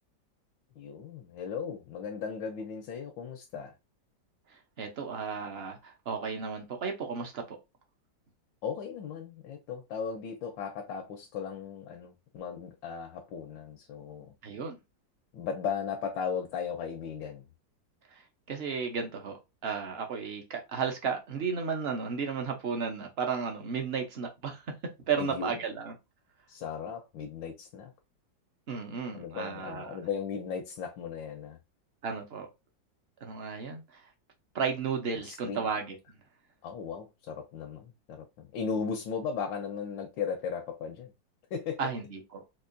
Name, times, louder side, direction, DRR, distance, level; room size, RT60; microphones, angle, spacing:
voice 1, 0.8-3.7 8.6-14.3 15.3-17.4 25.2-25.6 26.5-27.9 29.1-31.6 35.2-35.7 36.6-41.1 41.5-41.9, left 6 dB, 90° left, 1.4 m, -36 dB
voice 2, 4.8-7.6 14.4-14.8 18.1-18.2 18.5-24.7 25.1-25.9 28.7-30.0 32.0-32.5 33.2-34.0 34.5-36.0 41.8-42.4, right 6 dB, 55° right, 0.7 m, -34 dB
4.5 x 2.5 x 2.5 m
omnidirectional pair, 2.0 m